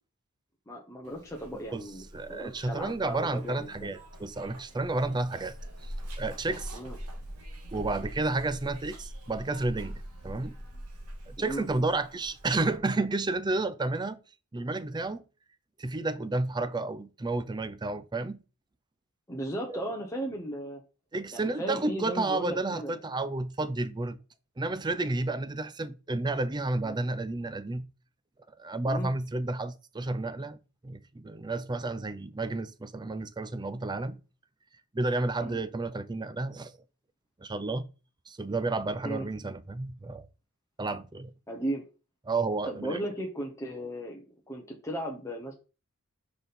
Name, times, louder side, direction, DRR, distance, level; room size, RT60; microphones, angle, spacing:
voice 1, 0.7-3.9 6.7-7.0 11.4-11.7 19.3-20.8 21.3-23.0 26.8-27.0 28.9-29.1 35.4-35.6 39.0-39.3 41.5-41.8 42.6-45.5, right 1 dB, 15° left, 1.0 m, -36 dB
Zipper (clothing), 1.0-12.8, equal, 85° right, 1.9 m, -43 dB
voice 2, 2.1-5.6 5.8-6.8 7.7-10.5 11.3-14.2 14.5-15.2 15.8-18.4 19.7-19.8 21.1-24.2 24.6-27.8 28.6-30.6 30.8-34.2 34.9-36.7 37.4-37.8 38.3-40.3 40.8-41.3 42.3-43.0, right 2 dB, 20° right, 0.5 m, -31 dB
6.1 x 5.2 x 4.2 m
head